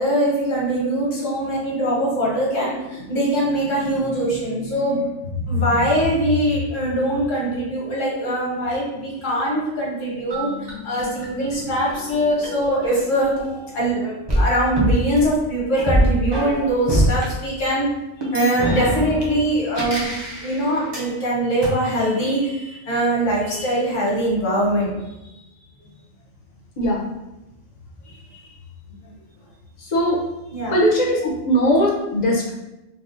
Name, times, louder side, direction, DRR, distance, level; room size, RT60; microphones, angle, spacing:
voice 1, 0.0-13.3 13.7-17.9 18.3-20.1 20.4-24.9 28.0-28.5 29.0-29.1 30.5-30.8, right 1 dB, 80° left, -5 dB, 1.4 m, -22 dB
sound 1, 10.3-13.8 14.3-17.3 18.2-21.1 21.6-21.7, right 1 dB, 35° right, 0.4 m, -25 dB
voice 2, 30.7-32.5, equal, 50° left, -2 dB, 0.6 m, -19 dB
3.7 x 2.1 x 2.5 m, 0.96 s
omnidirectional pair, 1.3 m